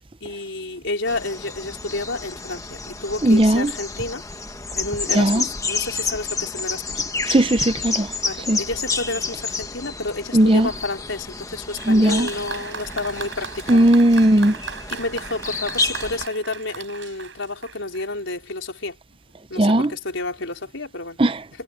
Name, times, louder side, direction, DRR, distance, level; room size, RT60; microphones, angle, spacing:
voice 1, 0.2-4.2 4.8-7.0 8.2-13.9 14.9-19.0 19.5-21.2, left 2 dB, 90° left, 4.7 m, -30 dB
sound 1, 1.1-16.3, left 4 dB, 15° left, 1.4 m, -30 dB
voice 2, 3.2-3.7 5.1-5.4 7.3-8.1 8.5-8.6 10.3-10.7 11.9-12.3 13.7-14.6 19.6-19.9 21.2-21.4, right 1 dB, 30° right, 0.7 m, -16 dB
Applause, 11.7-18.2 19.1-19.2, right 5 dB, 75° right, 6.0 m, -37 dB
head